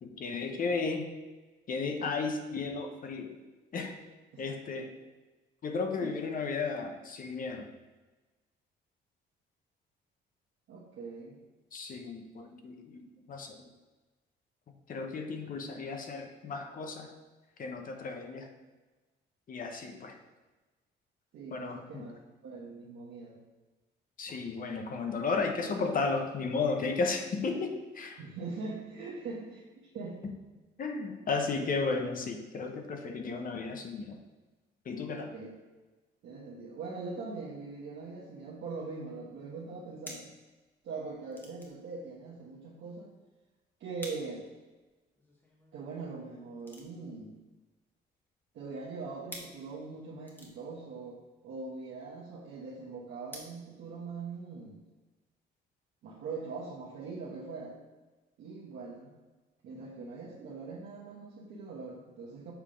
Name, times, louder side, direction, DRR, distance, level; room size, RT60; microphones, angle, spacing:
voice 1, 0.0-1.1 1.7-3.4 3.7-4.0 4.4-4.9 5.6-7.7 11.7-13.6 14.9-17.1 17.6-18.5 19.5-20.1 21.5-22.1 24.2-28.2 30.8-34.2 34.9-35.3, left 4 dB, 45° left, 4 dB, 0.8 m, -34 dB
voice 2, 10.7-11.4 21.3-23.4 28.2-30.2 35.1-35.5 36.2-40.3 40.8-43.1 43.8-44.4 45.7-47.4 48.5-54.8 56.0-57.8 58.4-59.1 59.6-62.5, right 4 dB, 75° right, -5 dB, 1.1 m, -42 dB
sound 1, 38.7-53.5, equal, 10° left, 1.3 m, -51 dB
7.3 x 3.5 x 5.0 m, 1.2 s
cardioid pair, 115°, 20 cm